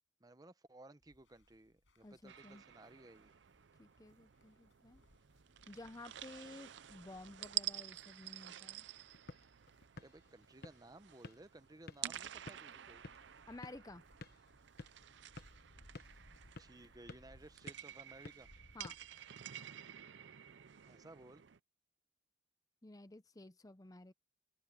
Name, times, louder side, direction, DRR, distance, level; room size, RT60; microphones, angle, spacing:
voice 1, 0.2-3.4 10.0-13.0 16.6-18.5 20.8-21.4, right 2 dB, 20° right, 0.8 m, -58 dB
sound 1, 1.0-19.1, equal, 70° left, 6.5 m, -68 dB
voice 2, 2.0-2.6 3.8-5.0 5.7-8.9 13.5-14.0 18.7-19.0 22.8-24.1, left 2 dB, 20° left, 0.6 m, -53 dB
sound 2, 2.3-21.6, right 12 dB, 65° right, 0.6 m, -50 dB
sound 3, 8.9-19.7, left 2 dB, 55° left, 1.1 m, -57 dB
open air
head